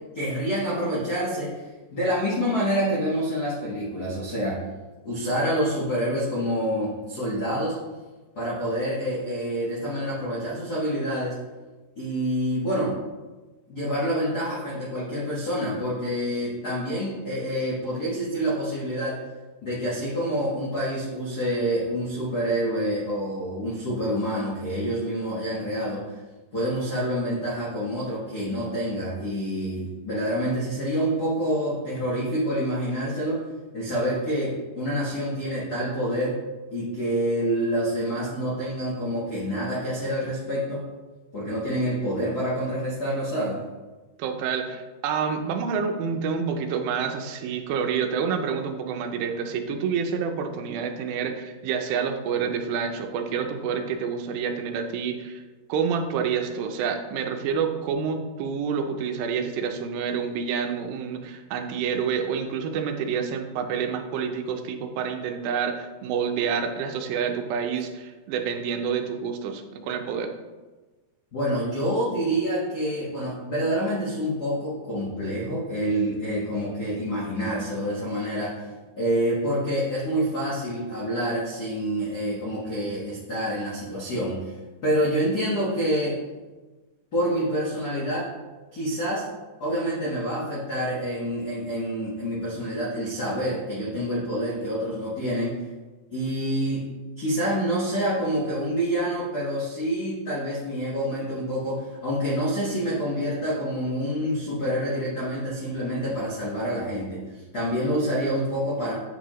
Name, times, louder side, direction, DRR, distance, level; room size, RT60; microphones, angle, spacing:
voice 1, 0.1-1.6 1.9-4.6 5.0-7.7 8.3-11.3 12.0-13.0 13.7-19.2 19.6-26.2 26.5-33.4 33.7-36.4 36.7-40.9 41.3-43.6 71.3-78.7 79.0-84.5 84.8-86.2 87.1-88.3 88.7-89.3 89.6-95.5 96.1-96.9 97.2-108.9, equal, 70° left, -7 dB, 0.9 m, -27 dB
voice 2, 44.2-55.4 55.7-70.3, right 6 dB, 90° right, 6 dB, 2.5 m, -28 dB
9.1 x 4.7 x 3.0 m, 1.2 s
omnidirectional pair, 4.1 m